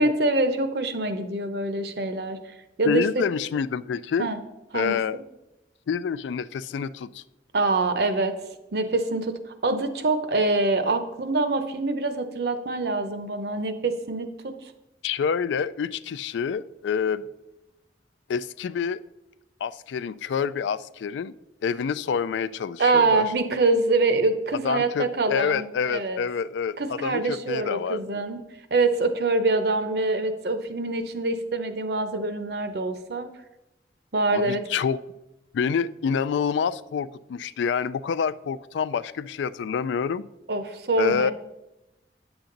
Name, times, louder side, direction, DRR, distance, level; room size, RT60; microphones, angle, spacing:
voice 1, 0.0-2.4 2.8-3.1 4.2-4.4 4.7-5.0 7.5-8.3 8.7-14.5 22.8-26.2 26.8-28.4 28.7-33.3 34.1-34.6 40.5-41.3, right 3 dB, 65° right, 9 dB, 0.7 m, -25 dB
voice 2, 2.9-4.3 4.7-5.2 5.9-7.2 15.0-17.2 18.3-19.0 19.6-21.3 21.6-23.2 24.6-28.2 34.3-35.0 35.5-40.3 41.0-41.3, left 6 dB, 85° left, 17 dB, 0.3 m, -27 dB
9.0 x 7.1 x 3.9 m, 0.94 s
head